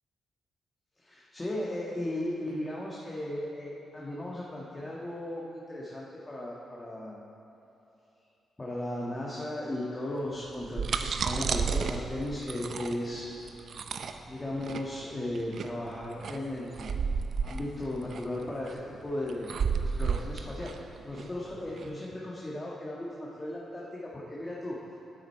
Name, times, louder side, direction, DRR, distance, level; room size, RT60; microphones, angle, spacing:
voice 1, 1.0-7.2 8.6-13.3 14.3-16.9 17.4-19.5 19.8-20.8 21.0-25.0, left 1 dB, 20° left, -5 dB, 1.4 m, -36 dB
sound 1, 10.5-21.9, right 6 dB, 65° right, 0.5 m, -32 dB
10.5 x 7.5 x 4.5 m, 2.9 s
cardioid pair, 65°, 0 cm